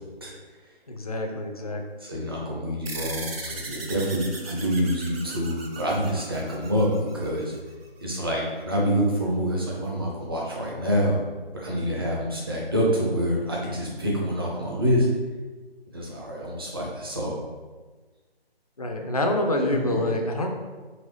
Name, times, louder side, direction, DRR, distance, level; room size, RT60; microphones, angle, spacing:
voice 1, 0.9-1.8 18.8-20.5, left 1 dB, 40° left, 3 dB, 0.4 m, -26 dB
voice 2, 2.0-7.5 8.0-11.2 11.5-15.1 15.9-17.3 19.7-20.1, equal, 25° right, -4 dB, 0.6 m, -26 dB
sound 1, 2.9-7.7, right 3 dB, 70° right, 0.7 m, -38 dB
4.0 x 3.0 x 3.1 m, 1.3 s
figure-of-eight pair, 155°, 31 cm